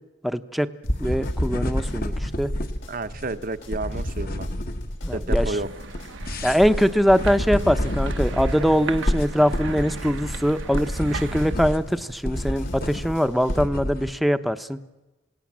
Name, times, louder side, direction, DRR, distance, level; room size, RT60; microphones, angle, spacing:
voice 1, 0.2-0.7 1.0-2.5 5.0-5.5 6.4-14.8, equal, ahead, 10 dB, 0.9 m, -22 dB
sound 1, 0.8-13.6, left 1 dB, 85° left, 6.2 m, -46 dB
sound 2, 0.9-14.1, equal, 50° left, 1.5 m, -28 dB
voice 2, 2.9-4.6 5.1-5.7, right 2 dB, 45° right, 12 dB, 0.9 m, -31 dB
sound 3, 5.4-11.6, right 4 dB, 85° right, 1.3 m, -38 dB
28.0 x 18.5 x 7.5 m, 1.1 s
head